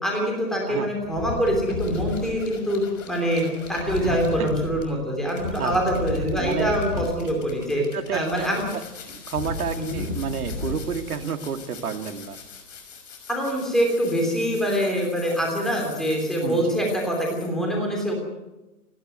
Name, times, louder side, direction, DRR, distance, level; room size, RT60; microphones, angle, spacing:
voice 1, 0.0-2.8 3.1-7.8 8.1-8.6 9.8-10.0 13.3-18.1, equal, ahead, -1 dB, 3.0 m, -24 dB
sound 1, 1.0-17.5, left 3 dB, 55° left, 6.1 m, -36 dB
voice 2, 3.7-4.5 5.6-5.8 6.3-6.7 7.9-8.5 8.7-8.8 9.3-12.4 16.4-16.6, right 7 dB, 70° right, 6 dB, 2.5 m, -30 dB
30.0 x 11.5 x 9.3 m, 1.0 s
hypercardioid pair, 175°, 46 cm